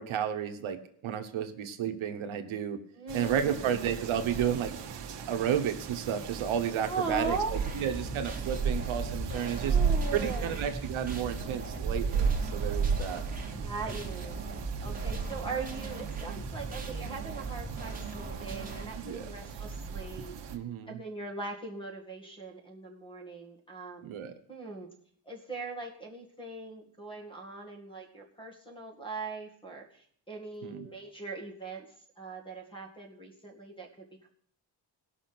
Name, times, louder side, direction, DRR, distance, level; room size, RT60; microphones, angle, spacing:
voice 1, 0.0-2.8 3.1-4.8 5.3-7.4 7.8-9.8 10.1-13.2 14.8-14.9 19.0-19.3 20.5-21.0 24.0-24.4 30.6-30.9, right 9 dB, 80° right, 7 dB, 1.2 m, -32 dB
voice 2, 2.9-3.9 6.8-8.1 9.6-10.6 13.6-14.4 14.8-20.4 20.9-24.2 24.5-24.9 25.3-31.9 32.2-34.3, right 3 dB, 10° left, 2 dB, 2.1 m, -40 dB
sound 1, 3.1-20.6, right 5 dB, 60° right, 1.2 m, -35 dB
sound 2, 7.5-18.8, right 4 dB, 15° right, 2.0 m, -39 dB
18.0 x 6.0 x 6.0 m, 0.64 s
cardioid pair, 150°, 48 cm